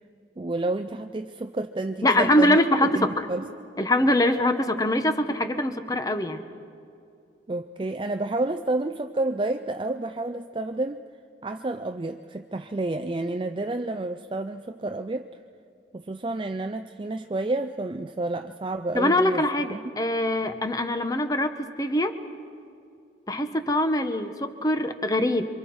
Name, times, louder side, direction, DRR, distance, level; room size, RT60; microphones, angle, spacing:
voice 1, 0.4-3.4 7.5-11.0 11.4-15.3 15.9-19.4 19.7-19.8, right 2 dB, 25° right, 7 dB, 0.4 m, -30 dB
voice 2, 2.0-3.3 3.8-6.4 18.9-22.2 23.3-25.4, left 1 dB, 20° left, 8 dB, 1.0 m, -23 dB
27.5 x 24.5 x 4.7 m, 2.5 s
head